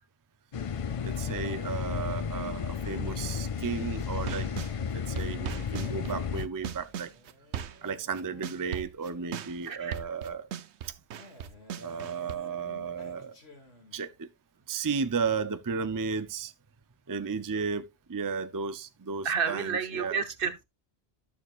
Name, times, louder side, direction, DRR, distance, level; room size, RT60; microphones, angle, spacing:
sound 1, 0.5-6.5, left 7 dB, 45° left, 0.4 m, -33 dB
voice 1, 1.0-4.5 4.9-7.1 7.8-10.5 11.8-13.4 13.9-14.3 14.7-16.5 17.1-20.2, right 5 dB, 25° right, 0.5 m, -34 dB
sound 2, 4.0-4.7 5.2-12.3, right 9 dB, 90° right, 1.0 m, -38 dB
Male speech man speaking, 6.6-9.6 11.2-14.2, left 1 dB, 70° left, 2.7 m, -54 dB
voice 2, 9.7-10.0 19.2-20.6, right 6 dB, 55° right, 1.2 m, -30 dB
12.5 x 7.0 x 2.4 m
omnidirectional pair, 1.1 m